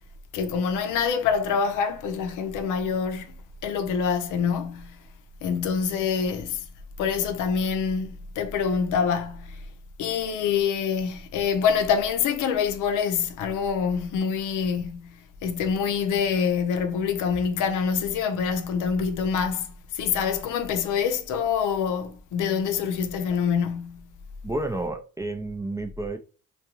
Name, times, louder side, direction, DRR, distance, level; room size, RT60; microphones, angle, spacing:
voice 1, 0.3-3.3 3.6-5.0 5.4-6.7 7.0-9.6 10.0-24.1, left 6 dB, 85° left, 0.6 m, -26 dB
voice 2, 24.4-26.2, right 2 dB, 10° right, 0.3 m, -30 dB
2.4 x 2.2 x 2.9 m
cardioid pair, 90°, 30 cm